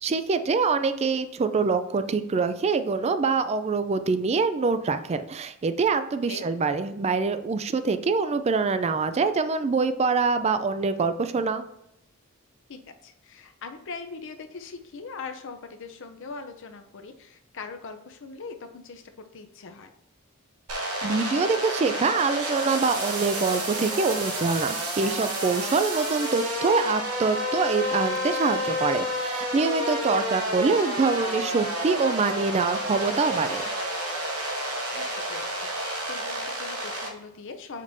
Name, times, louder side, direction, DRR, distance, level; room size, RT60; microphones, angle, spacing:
voice 1, 0.0-11.7 21.0-33.6, right 4 dB, 30° right, 11 dB, 0.3 m, -25 dB
voice 2, 12.7-19.9 30.1-30.3 34.9-37.8, left 4 dB, 60° left, 7 dB, 0.6 m, -41 dB
sound 1, 20.7-37.1, equal, 85° right, 1.3 m, -30 dB
6.9 x 5.1 x 2.7 m, 0.81 s
head